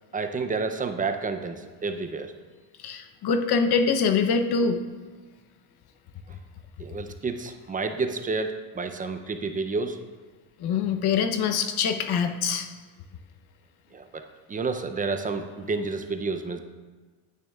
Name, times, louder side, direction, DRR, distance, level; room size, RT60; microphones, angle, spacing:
voice 1, 0.1-2.3 6.8-10.0 13.9-16.6, right 4 dB, 15° right, 7 dB, 0.5 m, -30 dB
voice 2, 2.8-4.8 10.6-12.7, left 5 dB, 50° left, 7 dB, 0.8 m, -24 dB
9.2 x 8.7 x 2.3 m, 1.4 s
cardioid pair, 105°, 49 cm